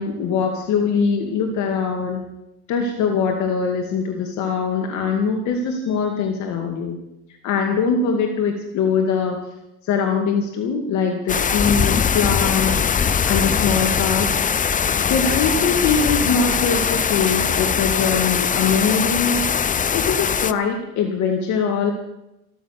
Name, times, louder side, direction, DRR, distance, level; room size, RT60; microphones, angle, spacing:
voice 1, 0.0-2.2 2.7-7.0 7.4-9.4 9.8-14.4 15.1-19.4 19.9-21.9, left 5 dB, 70° left, 3 dB, 2.2 m, -22 dB
sound 1, 11.3-20.5, left 7 dB, 25° left, 0.6 m, -21 dB
14.5 x 14.0 x 6.7 m, 0.90 s
supercardioid pair, 100°, 30 cm